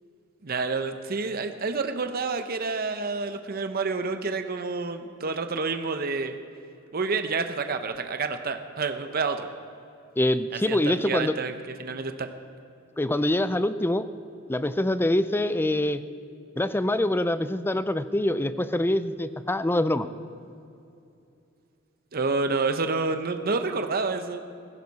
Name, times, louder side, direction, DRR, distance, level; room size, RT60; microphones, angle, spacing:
voice 1, 0.4-6.4 6.9-9.5 10.7-10.8 11.0-12.3 22.1-24.4, right 4 dB, 50° right, 7 dB, 0.7 m, -28 dB
voice 2, 10.2-11.3 13.0-14.1 14.5-16.0 16.6-20.1, left 1 dB, 10° left, 13 dB, 0.5 m, -25 dB
16.5 x 15.0 x 4.1 m, 2.6 s
head